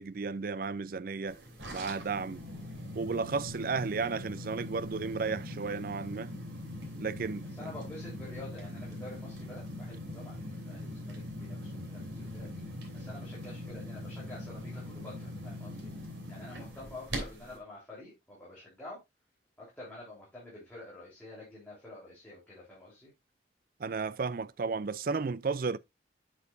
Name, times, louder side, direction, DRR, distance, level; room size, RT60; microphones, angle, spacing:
voice 1, 0.0-1.4 1.7-2.4 2.9-6.3 7.0-7.5 23.8-25.8, right 4 dB, 50° right, 0.4 m, -33 dB
sound 1, 1.3-17.6, left 1 dB, 75° right, 3.0 m, -42 dB
voice 2, 7.5-12.6 12.9-15.9 16.3-19.0 19.6-23.1, left 2 dB, 10° left, 3.4 m, -48 dB
8.2 x 7.3 x 2.5 m
head